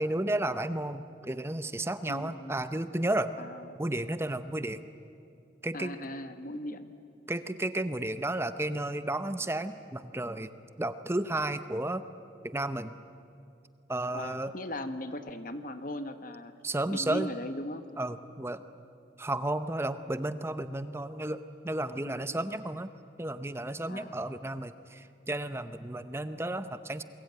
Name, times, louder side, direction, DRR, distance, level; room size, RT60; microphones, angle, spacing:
voice 1, 0.0-3.3 3.8-4.8 5.6-5.9 7.3-10.5 10.8-12.0 12.4-12.9 13.9-14.5 16.6-17.3 18.0-18.6 19.2-22.9 23.2-27.0, right 1 dB, 15° right, 11 dB, 0.7 m, -32 dB
voice 2, 2.1-2.6 3.4-3.8 5.7-6.9 14.1-16.5 16.9-17.9 22.0-22.4 23.9-24.2, left 1 dB, 45° left, 9 dB, 1.3 m, -38 dB
28.5 x 22.5 x 9.3 m, 2.5 s
head